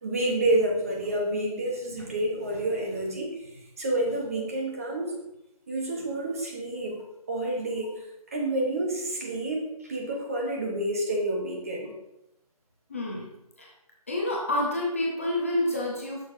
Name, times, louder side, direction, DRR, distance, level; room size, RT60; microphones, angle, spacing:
voice 1, 0.0-5.1 5.7-7.0 7.3-11.9, right 1 dB, 25° right, -1 dB, 0.9 m, -29 dB
voice 2, 12.9-13.3 13.6-13.7 14.1-16.2, left 1 dB, 20° left, -2 dB, 0.7 m, -28 dB
8.2 x 6.3 x 2.6 m, 0.87 s
figure-of-eight pair, 170°, 20 cm